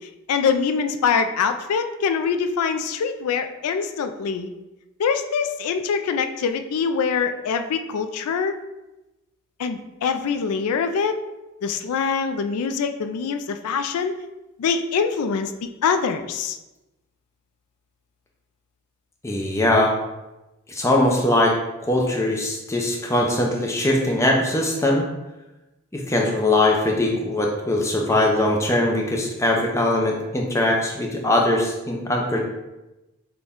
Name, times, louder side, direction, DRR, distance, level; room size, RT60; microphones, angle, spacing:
voice 1, 0.3-4.5 5.0-8.6 9.6-11.2 11.6-14.2 14.6-16.6, left 6 dB, 80° left, 8 dB, 0.3 m, -24 dB
voice 2, 19.2-19.9 20.7-21.5 21.9-25.0 25.9-32.4, left 1 dB, 15° left, -1 dB, 0.5 m, -21 dB
6.2 x 2.2 x 3.6 m, 1.0 s
head